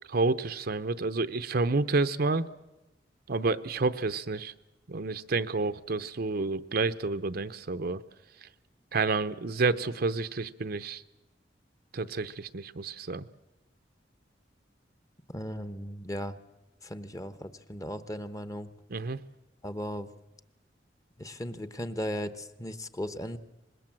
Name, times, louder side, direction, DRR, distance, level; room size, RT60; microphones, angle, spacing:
voice 1, 0.1-2.4 3.3-4.5 4.9-8.0 8.9-11.0 11.9-13.2 18.9-19.2, right 3 dB, 60° right, 11 dB, 0.8 m, -29 dB
voice 2, 15.3-16.3 16.8-18.7 19.6-20.1 21.2-23.4, equal, 20° left, 12 dB, 1.0 m, -36 dB
25.0 x 21.0 x 7.5 m, 0.97 s
head